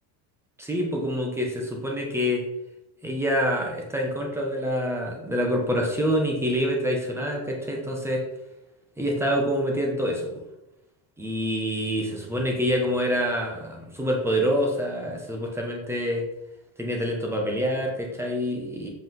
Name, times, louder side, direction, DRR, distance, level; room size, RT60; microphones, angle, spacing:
voice 1, 0.6-2.5 3.0-8.2 9.0-10.4 11.2-16.3 16.8-18.9, equal, 5° right, 0 dB, 1.4 m, -26 dB
7.7 x 5.1 x 3.9 m, 0.90 s
cardioid pair, 145°, 49 cm